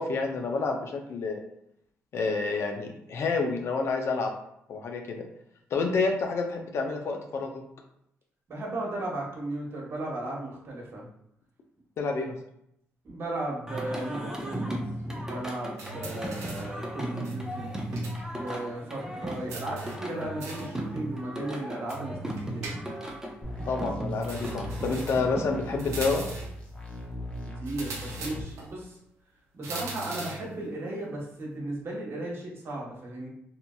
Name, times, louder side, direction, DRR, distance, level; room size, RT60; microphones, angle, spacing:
voice 1, 0.0-1.4 2.1-4.3 4.7-5.2 5.7-7.6 12.0-12.4 23.7-26.2, left 4 dB, 60° left, 3 dB, 0.5 m, -29 dB
voice 2, 8.5-11.1 13.0-17.7 18.3-22.7 27.4-29.0 29.5-33.3, right 1 dB, 55° right, -3 dB, 1.0 m, -36 dB
Singing, 13.7-26.1, right 1 dB, 10° right, 0.6 m, -36 dB
sound 1, 15.8-16.8 17.2-18.2 18.5-18.6 19.5-20.8 21.9-23.2 24.2-25.3 25.8-26.6 27.7-28.7 29.6-30.5, right 3 dB, 75° right, 0.6 m, -40 dB
sound 2, 23.4-28.4, left 1 dB, 25° left, 0.7 m, -39 dB
2.7 x 2.6 x 2.2 m, 0.75 s
supercardioid pair, 65°, 5 cm